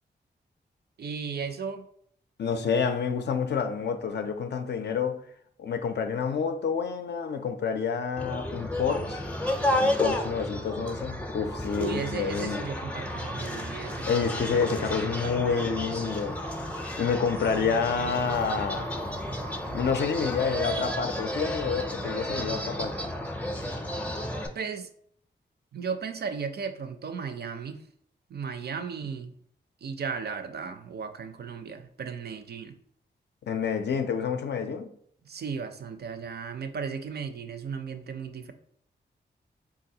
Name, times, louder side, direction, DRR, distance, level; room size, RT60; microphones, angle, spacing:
voice 1, 1.0-1.9 11.7-14.9 15.2-15.6 24.5-24.9 25.7-27.8 28.3-29.3 29.8-32.8 35.2-38.5, right 6 dB, 55° right, 0.4 m, -35 dB
voice 2, 2.4-5.3 5.6-9.2 9.6-12.7 14.0-16.4 17.0-18.9 19.7-23.1 33.4-34.9, left 6 dB, 65° left, 0.4 m, -28 dB
sound 1, 8.2-24.5, left 1 dB, 5° left, 0.5 m, -32 dB
3.8 x 2.3 x 2.7 m
cardioid pair, 55°, 19 cm